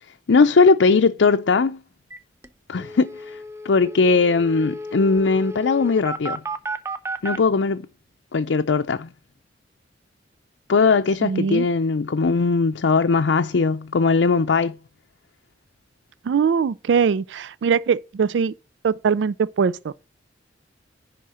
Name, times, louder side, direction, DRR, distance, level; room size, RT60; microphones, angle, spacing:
voice 1, 0.3-1.8 2.7-3.4 3.6-6.4 7.2-7.8 8.3-9.1 10.7-14.7, left 4 dB, 80° left, 0.5 m, -19 dB
sound 1, 2.1-2.2 2.4-2.5 2.8-7.4, right 1 dB, 15° right, 0.6 m, -33 dB
voice 2, 11.2-11.7 16.2-18.5 18.8-19.9, right 6 dB, 75° right, 0.3 m, -21 dB
10.5 x 3.8 x 6.3 m
head